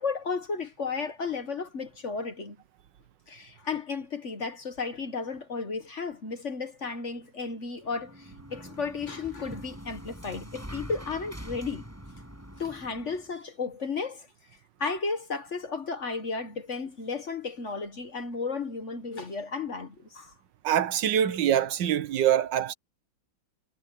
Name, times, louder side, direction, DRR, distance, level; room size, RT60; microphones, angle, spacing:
voice 1, 0.0-2.6 3.3-11.8 12.6-14.3 14.8-20.3, left 4 dB, 40° left, 1.3 m, -34 dB
sound 1, 7.8-13.3, equal, 5° right, 6.4 m, -44 dB
voice 2, 20.6-22.7, right 10 dB, 65° right, 1.5 m, -24 dB
omnidirectional pair, 2.2 m